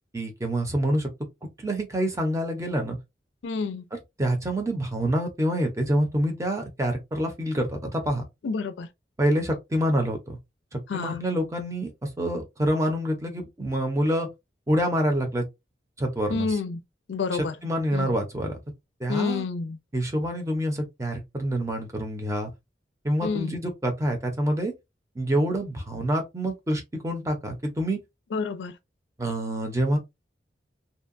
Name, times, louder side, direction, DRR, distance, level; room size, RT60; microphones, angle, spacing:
voice 1, 0.1-1.1 1.6-3.0 4.2-8.2 9.2-10.4 10.7-14.3 14.7-15.5 16.0-16.6 17.6-18.5 19.0-19.4 19.9-22.5 23.0-24.7 25.2-28.0 29.2-30.0, equal, 15° right, 0.6 m, -26 dB
voice 2, 3.4-3.8 8.4-8.9 10.9-11.2 16.3-16.8 17.1-17.6 17.9-18.2 19.1-19.8 23.2-23.6 28.3-28.8, left 4 dB, 80° left, 0.4 m, -29 dB
2.7 x 2.2 x 2.5 m
head